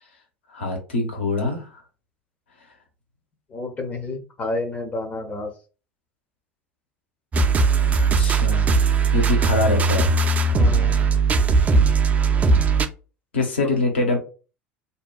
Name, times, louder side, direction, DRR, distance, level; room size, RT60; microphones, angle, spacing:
voice 1, 0.5-1.7 7.8-8.7 9.1-10.1 13.3-14.2, left 2 dB, 75° left, 2 dB, 0.8 m, -24 dB
voice 2, 3.5-5.5 10.6-11.0, left 2 dB, 25° left, 4 dB, 0.6 m, -30 dB
sound 1, 7.3-12.9, right 4 dB, 25° right, 0.3 m, -19 dB
2.7 x 2.2 x 2.3 m, 0.34 s
figure-of-eight pair, 70°, 6 cm